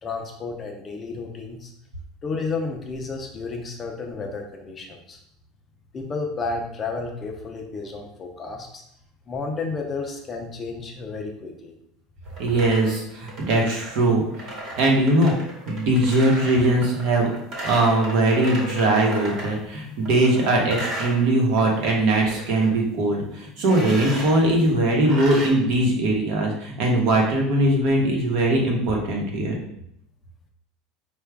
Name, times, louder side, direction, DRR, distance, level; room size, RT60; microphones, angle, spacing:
voice 1, 0.0-1.7 2.2-5.2 5.9-8.8 9.3-11.7, left 4 dB, 20° left, 2 dB, 0.4 m, -32 dB
sound 1, 12.3-19.6 20.0-21.9 22.2-22.7 23.6-24.4 25.0-25.5, right 1 dB, 35° right, 1.1 m, -35 dB
voice 2, 12.4-14.5 14.8-15.3 15.7-17.3 17.6-29.6, right 1 dB, 55° right, 0 dB, 1.0 m, -21 dB
4.7 x 2.3 x 3.4 m, 0.76 s
cardioid pair, 165°, 0 cm